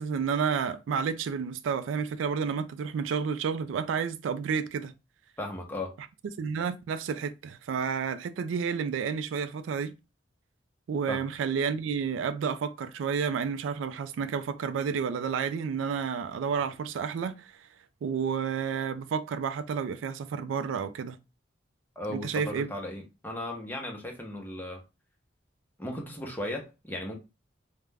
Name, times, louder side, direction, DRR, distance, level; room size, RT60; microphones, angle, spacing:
voice 1, 0.0-4.9 6.4-9.9 10.9-17.5 18.0-21.2 22.1-22.7, right 6 dB, 90° right, 0.3 m, -30 dB
voice 2, 5.4-5.9 11.1-11.2 22.0-24.8 25.8-27.1, left 1 dB, 10° left, 0.6 m, -36 dB
2.3 x 2.1 x 3.2 m
head